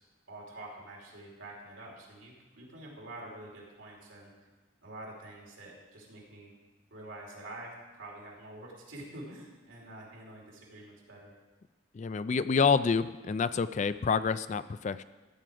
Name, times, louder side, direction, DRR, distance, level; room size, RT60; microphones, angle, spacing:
voice 1, 0.3-4.5 4.8-6.5 6.9-11.3, right 1 dB, 90° right, -2 dB, 3.0 m, -47 dB
voice 2, 11.9-15.0, left 5 dB, 35° left, 14 dB, 0.3 m, -28 dB
14.0 x 7.6 x 4.8 m, 1.2 s
head